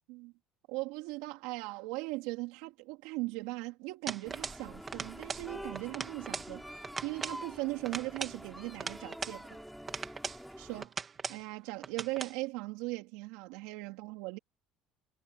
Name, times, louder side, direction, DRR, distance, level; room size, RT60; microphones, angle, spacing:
voice 1, 0.7-6.6 7.0-9.6 10.6-10.9 11.3-14.4, right 22 dB, 90° right, 3.5 m, -39 dB
sound 1, 4.1-4.6 4.9-5.5 5.8-6.5 6.8-7.4 7.8-9.4 9.9-10.4 10.8-11.4 11.8-12.4, right 5 dB, 25° right, 2.1 m, -39 dB
sound 2, 4.2-10.9, equal, ahead, 4.1 m, -47 dB
cardioid pair, 155°, 0 cm